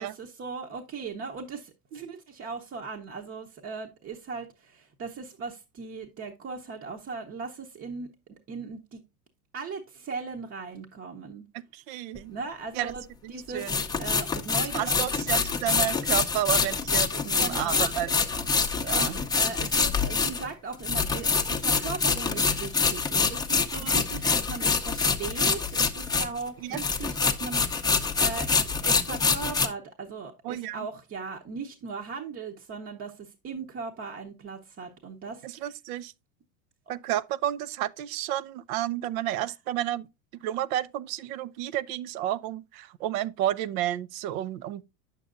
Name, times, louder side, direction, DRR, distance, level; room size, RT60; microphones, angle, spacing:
voice 1, 0.0-8.1 8.5-9.0 9.5-11.4 12.3-15.3 17.1-17.9 18.9-19.1 19.4-35.7, right 4 dB, 30° right, 0.9 m, -38 dB
voice 2, 11.7-12.3 12.7-12.9 13.5-13.8 14.6-19.2 23.7-24.0 26.6-26.8 30.4-30.9 35.4-36.1 36.9-40.1 40.4-44.8, right 12 dB, 65° right, 0.6 m, -31 dB
sound 1, 12.2-12.3 13.6-26.5 26.7-29.7, left 5 dB, 10° left, 0.6 m, -26 dB
8.3 x 6.7 x 2.5 m
supercardioid pair, 105°, 45 cm